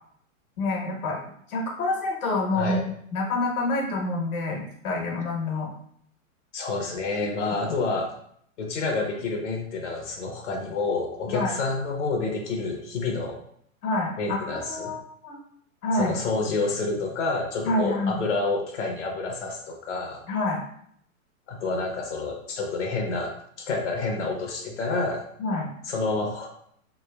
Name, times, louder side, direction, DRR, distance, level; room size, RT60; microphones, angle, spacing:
voice 1, 0.6-1.2 1.5-5.7 11.3-11.5 13.8-15.4 15.8-16.1 17.6-18.2 20.3-20.6 25.4-25.7, left 2 dB, 85° left, 0 dB, 1.2 m, -27 dB
voice 2, 6.5-8.1 8.6-13.4 14.2-14.9 15.9-20.2 21.5-25.2 25.8-26.5, left 3 dB, 55° left, 1 dB, 0.7 m, -28 dB
3.4 x 3.1 x 2.2 m, 0.67 s
supercardioid pair, 180°, 42 cm